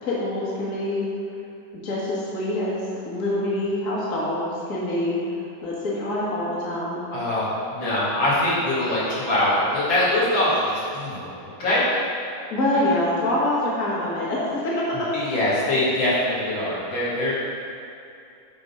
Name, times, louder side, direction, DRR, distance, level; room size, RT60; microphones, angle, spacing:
voice 1, 0.0-1.1 1.8-5.2 5.6-7.1 12.5-15.5, left 1 dB, 45° left, -6 dB, 1.7 m, -25 dB
voice 2, 7.1-11.3 11.6-11.8 15.1-17.3, left 1 dB, 80° left, -9 dB, 2.8 m, -23 dB
8.6 x 3.9 x 5.6 m, 2.6 s
omnidirectional pair, 2.1 m